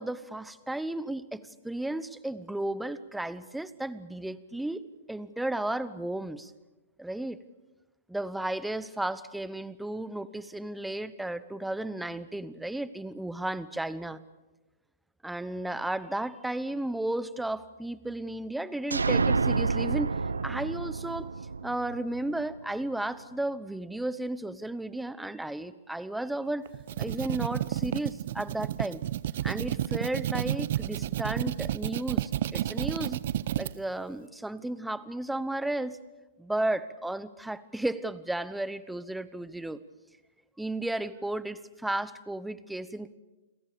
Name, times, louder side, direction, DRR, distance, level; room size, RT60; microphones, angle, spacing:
voice 1, 0.0-4.8 5.1-6.5 7.0-7.4 8.1-14.2 15.2-20.2 20.4-21.3 21.6-26.7 27.0-29.0 29.4-33.2 33.6-36.0 36.4-39.8 40.6-43.2, right 1 dB, 5° right, 16 dB, 1.0 m, -34 dB
sound 1, 18.9-22.6, right 4 dB, 90° right, 1.0 m, -28 dB
sound 2, 26.7-33.7, right 12 dB, 55° right, 0.7 m, -31 dB
30.0 x 21.5 x 6.9 m, 1.1 s
hypercardioid pair, 125°, 0 cm